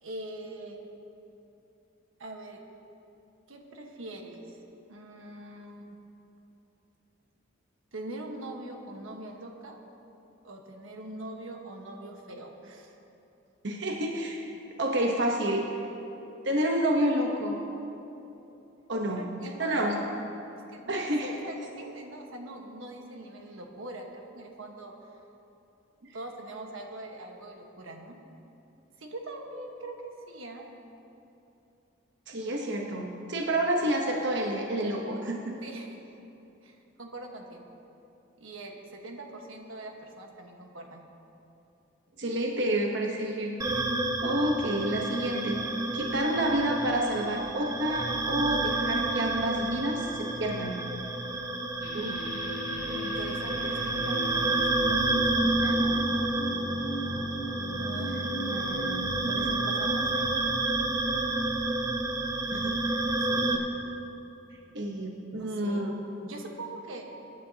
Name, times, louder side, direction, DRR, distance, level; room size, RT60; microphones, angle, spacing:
voice 1, 0.0-0.9 2.2-2.6 3.5-4.6 4.9-6.0 7.9-9.8 10.4-13.0 19.1-20.1 20.7-24.9 26.1-28.2 29.0-30.7 35.6-36.1 36.6-37.7 38.4-41.0 52.8-56.1 57.8-60.6 61.3-61.4 63.1-63.8 65.4-65.9 66.2-67.0, right 1 dB, 85° right, 2 dB, 1.3 m, -42 dB
voice 2, 13.6-14.4 14.8-15.7 16.4-17.6 18.9-19.2 19.6-20.0 20.9-21.3 32.3-35.6 42.2-43.6 44.2-45.6 45.9-50.8 51.9-52.2 62.5-62.8 64.7-65.9, right 1 dB, 60° right, 0 dB, 1.0 m, -29 dB
sound 1, 43.6-63.6, right 2 dB, 15° right, 0.7 m, -29 dB
sound 2, 51.8-61.2, equal, 85° left, 0.8 m, -40 dB
23.5 x 10.0 x 2.8 m, 2.9 s
head